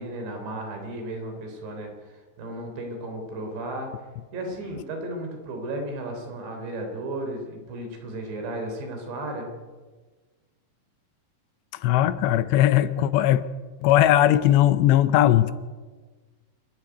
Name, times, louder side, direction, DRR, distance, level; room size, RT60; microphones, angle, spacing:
voice 1, 0.0-3.9 4.3-9.5, right 1 dB, 70° right, 4 dB, 5.7 m, -34 dB
voice 2, 11.7-13.4 13.8-15.5, left 12 dB, 80° left, 14 dB, 2.8 m, -19 dB
27.5 x 12.0 x 9.4 m, 1.4 s
omnidirectional pair, 5.3 m